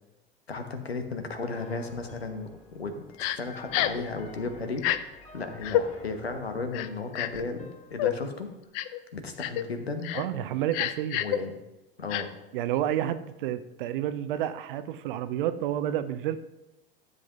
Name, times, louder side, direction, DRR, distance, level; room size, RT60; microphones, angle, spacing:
voice 1, 0.5-4.8 5.3-8.5 8.9-10.1 11.2-11.5 12.0-12.3, left 3 dB, 80° left, 6 dB, 1.1 m, -35 dB
Piano, 1.4-8.3, left 2 dB, 25° left, 2.9 m, -50 dB
Crying sobbing, 3.2-3.4 3.7-4.0 4.8-5.0 5.6-5.8 6.7-7.4 8.0-8.1 8.7-9.0 9.4-9.6 10.0-10.2 10.7-11.4 12.1-12.2, left 13 dB, 45° left, 0.6 m, -28 dB
voice 2, 10.1-11.2 12.5-16.4, right 11 dB, 55° right, 12 dB, 0.7 m, -30 dB
13.5 x 7.6 x 2.5 m, 0.98 s
figure-of-eight pair, 75°, 31 cm